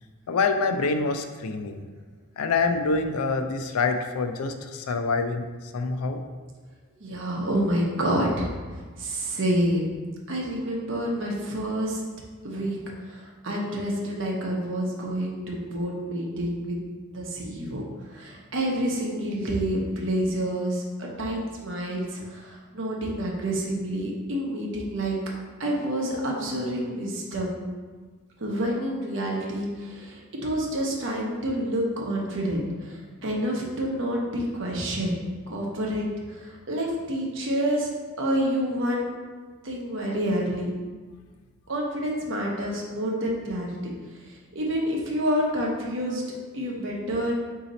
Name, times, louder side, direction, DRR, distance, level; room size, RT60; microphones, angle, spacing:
voice 1, 0.3-1.8 2.4-5.4 5.7-6.2, left 4 dB, 85° left, 7 dB, 0.4 m, -26 dB
voice 2, 7.0-8.5 9.0-9.9 10.3-12.0 12.4-16.8 17.1-17.8 18.1-25.1 25.6-27.6 28.4-33.0 33.2-35.2 35.5-36.1 36.7-37.9 38.2-39.1 39.6-40.7 41.7-43.9 44.5-47.3, equal, 60° right, -2 dB, 0.8 m, -28 dB
3.9 x 2.8 x 4.0 m, 1.4 s
head